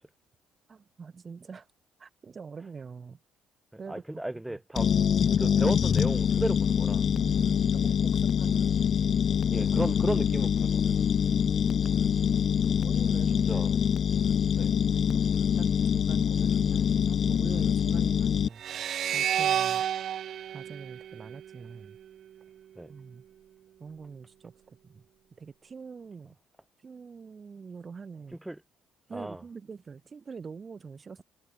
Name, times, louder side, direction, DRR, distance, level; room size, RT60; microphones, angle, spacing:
voice 1, 0.7-1.7 2.0-3.2 3.8-4.6 7.0-9.7 12.8-13.6 14.9-18.6 19.1-19.8 20.5-22.0 22.9-23.2 23.8-25.0 25.3-26.4 26.8-28.4 29.1-31.2, right 5 dB, 40° right, 6.8 m, -44 dB
voice 2, 3.7-4.9 5.4-7.0 9.5-10.8 13.1-13.2 13.5-13.8 14.5-14.7 22.8-22.9 28.4-28.6 29.1-29.4, right 1 dB, 10° right, 4.4 m, -34 dB
sound 1, 4.8-18.5, left 8 dB, 50° left, 1.4 m, -25 dB
sound 2, 18.6-21.9, right 10 dB, 55° right, 0.6 m, -30 dB
hypercardioid pair, 50°, 0 cm